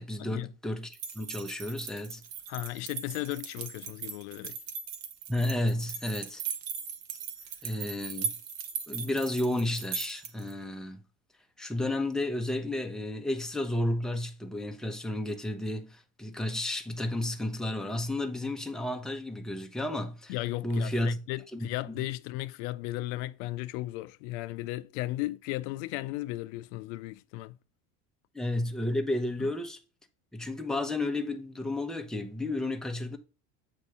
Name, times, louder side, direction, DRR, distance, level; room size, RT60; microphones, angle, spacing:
voice 1, 0.0-2.2 5.3-6.4 7.6-8.3 8.9-11.0 11.6-20.3 20.6-21.2 21.5-22.1 28.3-29.8 30.3-33.2, left 1 dB, ahead, 0.8 m, -32 dB
sound 1, 0.9-10.5, right 6 dB, 65° right, 1.1 m, -39 dB
voice 2, 2.5-4.6 20.3-27.6 29.4-29.5, left 18 dB, 75° left, 0.5 m, -35 dB
7.8 x 2.7 x 4.8 m
supercardioid pair, 105°, 39 cm